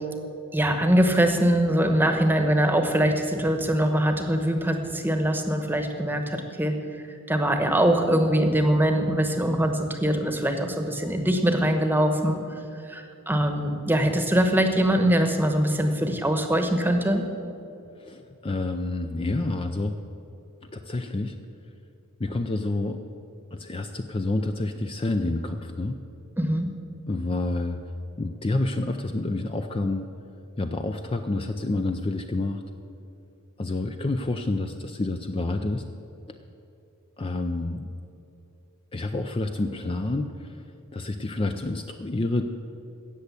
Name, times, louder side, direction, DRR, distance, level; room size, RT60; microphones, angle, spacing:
voice 1, 0.5-6.7 7.3-12.4 12.9-17.2 26.4-26.7, right 1 dB, 10° right, 6 dB, 1.1 m, -23 dB
voice 2, 18.0-19.9 20.6-21.3 22.2-23.0 23.5-26.0 27.1-27.8 28.2-30.1 30.6-32.6 33.6-35.8 36.3-36.4 37.2-37.9 38.9-42.4, left 2 dB, 25° left, 6 dB, 0.5 m, -28 dB
16.5 x 6.7 x 8.2 m, 2.9 s
head